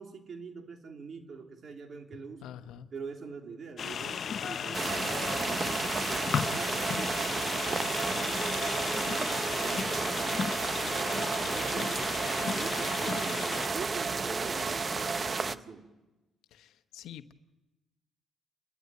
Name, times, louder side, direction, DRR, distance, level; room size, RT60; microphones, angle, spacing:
voice 1, 0.0-2.5 2.9-8.6 8.9-12.2 12.5-15.9, right 5 dB, 50° right, 3 dB, 3.0 m, -45 dB
voice 2, 2.4-2.9 16.5-17.3, left 10 dB, 85° left, 11 dB, 1.0 m, -46 dB
sound 1, 3.8-13.7, left 7 dB, 55° left, 0.6 m, -35 dB
sound 2, 4.7-15.6, right 4 dB, 35° right, 0.8 m, -32 dB
30.0 x 12.5 x 9.2 m, 1.1 s
cardioid pair, 90°, 0 cm